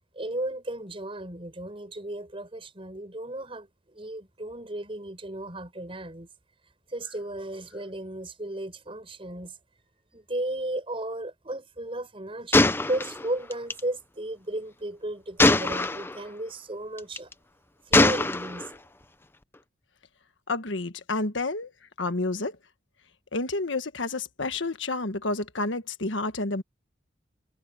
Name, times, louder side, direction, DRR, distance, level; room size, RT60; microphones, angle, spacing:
voice 1, 0.1-6.3 6.9-9.5 10.1-17.3 17.9-18.7, right 1 dB, 30° right, 5.0 m, -35 dB
Gunshot gunfire, 12.5-13.8 15.4-16.2 17.0-17.3 17.9-18.7, left 2 dB, 10° left, 0.6 m, -22 dB
voice 2, 20.5-21.7 22.0-22.6 23.3-26.6, left 2 dB, 80° left, 1.5 m, -29 dB
head